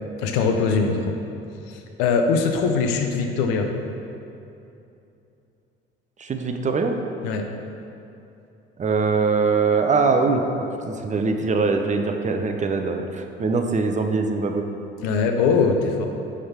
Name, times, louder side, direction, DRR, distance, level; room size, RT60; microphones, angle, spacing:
voice 1, 0.2-1.2 1.7-3.7 7.2-7.5 15.0-16.1, left 5 dB, 75° left, 4 dB, 0.7 m, -21 dB
voice 2, 6.2-7.0 8.8-14.6, right 4 dB, 25° right, 5 dB, 0.6 m, -22 dB
5.4 x 3.7 x 5.6 m, 2.7 s
hypercardioid pair, 60°, 29 cm